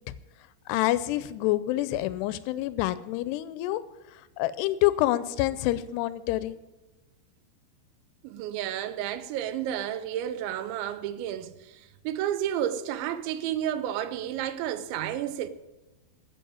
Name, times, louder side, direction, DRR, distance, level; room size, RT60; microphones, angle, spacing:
voice 1, 0.7-3.8 4.4-6.6, left 15 dB, 80° left, 2.5 m, -27 dB
voice 2, 8.2-15.5, right 11 dB, 85° right, 3.1 m, -31 dB
15.0 x 7.1 x 8.5 m
omnidirectional pair, 5.2 m